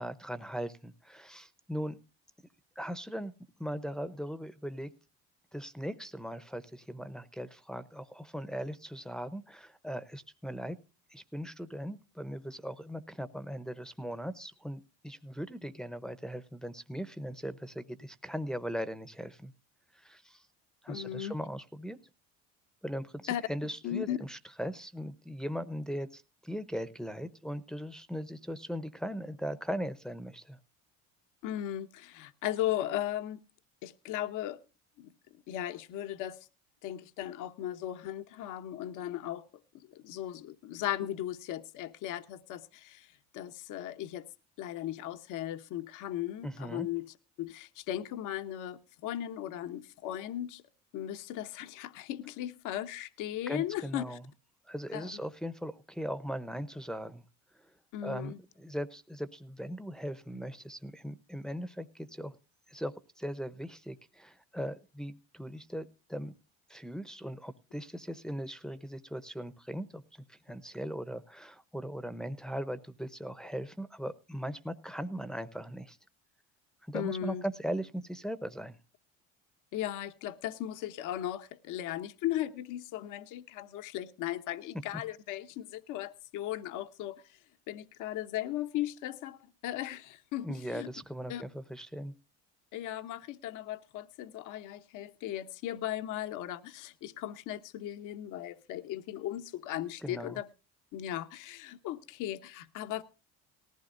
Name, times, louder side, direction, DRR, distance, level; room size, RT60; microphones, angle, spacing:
voice 1, 0.0-2.0 2.8-3.3 3.6-4.9 5.5-10.8 11.1-19.5 19.9-20.4 20.8-22.0 22.8-23.2 23.5-30.6 46.4-46.9 53.5-54.2 54.7-57.2 58.0-62.4 62.7-66.3 66.7-76.0 76.8-78.8 90.4-92.1 100.0-100.4, equal, ahead, 0.8 m, -39 dB
voice 2, 20.9-21.3 23.3-23.4 23.8-24.2 31.4-33.4 33.8-34.6 35.0-35.1 35.5-36.5 36.8-39.4 39.7-44.3 44.6-50.6 50.9-54.2 54.9-55.2 57.9-58.4 76.9-77.4 79.7-87.4 87.7-90.9 91.3-91.4 92.7-100.5 100.9-103.0, left 12 dB, 65° left, 0.9 m, -37 dB
18.5 x 15.0 x 2.6 m
supercardioid pair, 95°, 33 cm